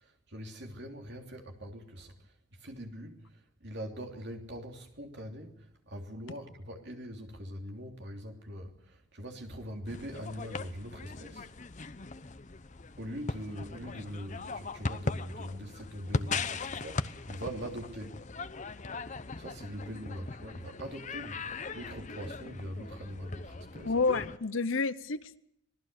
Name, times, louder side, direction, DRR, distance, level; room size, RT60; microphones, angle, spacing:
voice 1, 0.0-2.1 2.5-11.5 13.0-18.2 19.4-23.9, equal, 50° right, 3.1 m, -42 dB
sound 1, 9.8-24.4, left 3 dB, 35° left, 0.8 m, -39 dB
voice 2, 23.8-25.4, left 4 dB, 65° left, 0.9 m, -29 dB
26.5 x 19.0 x 6.8 m
head